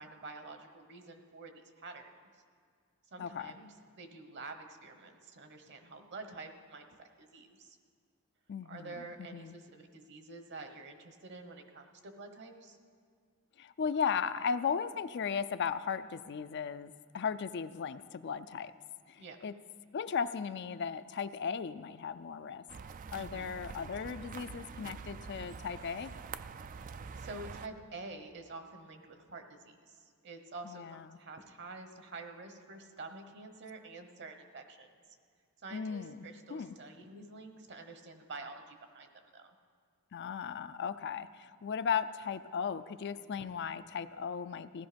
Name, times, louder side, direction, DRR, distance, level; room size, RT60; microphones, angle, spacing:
voice 1, 0.0-2.1 3.1-7.8 8.6-12.8 19.2-19.5 23.1-23.5 27.2-34.9 35.6-39.5, right 3 dB, 55° right, 7 dB, 1.2 m, -48 dB
voice 2, 3.2-3.5 8.5-9.5 13.6-18.7 19.1-19.5 19.9-22.6 23.1-26.1 30.7-31.2 35.7-36.7 40.1-44.9, left 6 dB, 50° left, 12 dB, 0.4 m, -36 dB
sound 1, 22.7-27.7, right 5 dB, 40° right, 0.3 m, -45 dB
16.5 x 12.5 x 5.2 m, 2.1 s
head